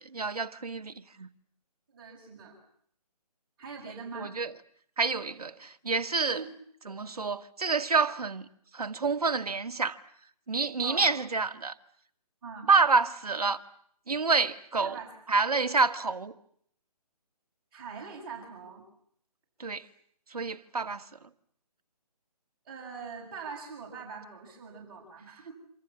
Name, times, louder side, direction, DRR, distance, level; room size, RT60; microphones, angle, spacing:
voice 1, 0.1-1.3 4.2-4.5 5.0-6.4 6.9-8.5 8.7-10.0 10.5-11.7 12.7-13.6 14.1-15.0 15.3-16.3 19.6-19.8 20.3-21.0, right 4 dB, 65° right, 2.0 m, -28 dB
voice 2, 1.9-2.6 3.6-4.3 6.3-6.5 10.8-11.2 12.4-12.7 14.8-15.1 17.7-18.8 22.7-25.5, right 5 dB, 35° right, 7.2 m, -42 dB
27.5 x 26.5 x 7.4 m
figure-of-eight pair, 145°, 21 cm